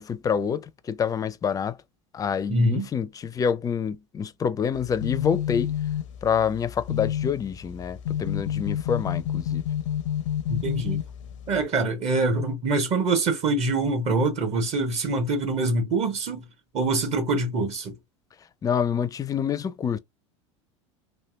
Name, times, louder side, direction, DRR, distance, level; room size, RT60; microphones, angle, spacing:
voice 1, 0.0-1.8 2.1-5.7 6.2-9.6 18.6-20.0, left 7 dB, 20° left, 0.4 m, -27 dB
voice 2, 2.5-2.9 10.5-11.0 11.5-16.4 16.7-17.9, right 2 dB, 40° right, 0.9 m, -24 dB
sound 1, 4.7-11.6, left 10 dB, 80° left, 0.5 m, -30 dB
3.3 x 2.6 x 2.4 m
hypercardioid pair, 90°, 16 cm